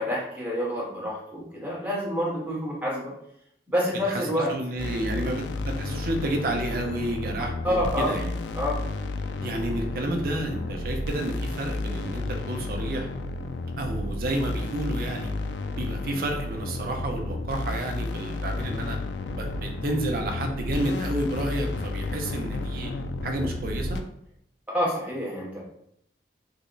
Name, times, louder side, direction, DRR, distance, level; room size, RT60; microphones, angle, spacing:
voice 1, 0.0-3.1 3.7-4.5 7.6-8.1 8.5-8.8 24.7-25.6, equal, 10° right, -5 dB, 1.0 m, -28 dB
voice 2, 4.5-8.3 9.4-13.1 13.8-15.3 15.8-19.0 19.3-22.9 23.2-24.0, right 1 dB, 55° right, 2 dB, 0.5 m, -30 dB
sound 1, 4.8-24.0, left 2 dB, 80° left, 0.3 m, -32 dB
3.4 x 2.1 x 3.8 m, 0.74 s
head